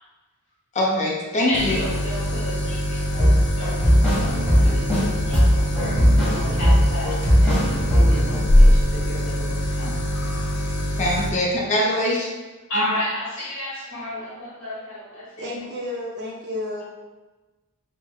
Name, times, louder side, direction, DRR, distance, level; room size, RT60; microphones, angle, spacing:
voice 1, 0.7-1.8 11.0-12.3, left 1 dB, 30° left, -3 dB, 0.6 m, -22 dB
sound 1, 1.5-11.3, equal, 90° left, 0.6 m, -23 dB
voice 2, 1.5-6.0 6.3-9.9 12.7-15.7, left 1 dB, 60° left, -7 dB, 1.5 m, -32 dB
sound 2, 3.1-5.0 5.3-8.3, equal, 5° left, 1.2 m, -19 dB
voice 3, 15.4-16.8, left 1 dB, 50° right, -3 dB, 0.6 m, -31 dB
4.0 x 2.0 x 3.0 m, 1.2 s
head